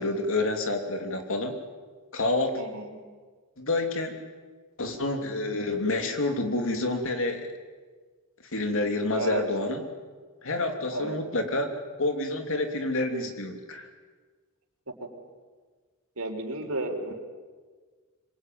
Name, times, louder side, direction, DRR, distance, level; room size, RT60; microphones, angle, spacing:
voice 1, 0.0-1.5 2.1-2.6 3.6-4.2 4.8-7.5 8.5-9.8 10.4-11.7 12.0-13.9, left 2 dB, 65° left, 5 dB, 3.1 m, -28 dB
voice 2, 2.6-3.0 9.1-9.4 10.8-11.2 15.0-15.1 16.2-17.1, right 2 dB, 90° right, 2 dB, 4.3 m, -32 dB
26.0 x 22.5 x 9.4 m, 1.5 s
head